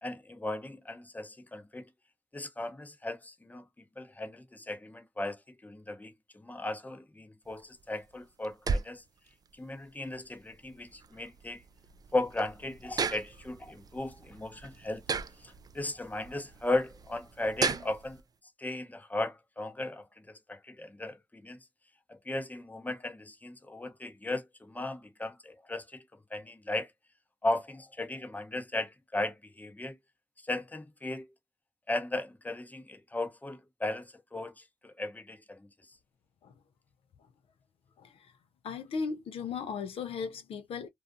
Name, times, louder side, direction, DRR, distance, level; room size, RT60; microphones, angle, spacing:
voice 1, 0.0-1.9 2.3-3.6 4.0-9.0 9.5-11.6 12.1-15.0 15.4-18.2 18.6-21.6 22.1-26.0 26.3-26.9 27.4-30.0 30.4-31.3 31.9-35.7, left 2 dB, 15° left, 0.7 m, -36 dB
sound 1, 7.5-18.2, right 5 dB, 40° right, 0.3 m, -38 dB
voice 2, 38.0-38.3 38.6-40.9, left 5 dB, 75° left, 0.4 m, -37 dB
2.4 x 2.3 x 2.4 m
supercardioid pair, 45°, 10 cm